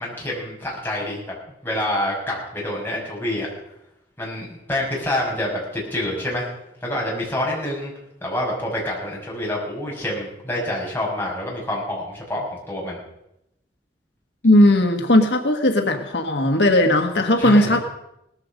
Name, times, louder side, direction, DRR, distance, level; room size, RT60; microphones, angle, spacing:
voice 1, 0.0-1.3 1.6-3.5 4.2-6.5 6.8-7.9 8.2-13.0 17.4-17.8, left 1 dB, 10° left, -4 dB, 6.0 m, -27 dB
voice 2, 14.4-17.8, left 1 dB, 75° left, 5 dB, 1.5 m, -17 dB
18.5 x 14.5 x 5.2 m, 0.81 s
head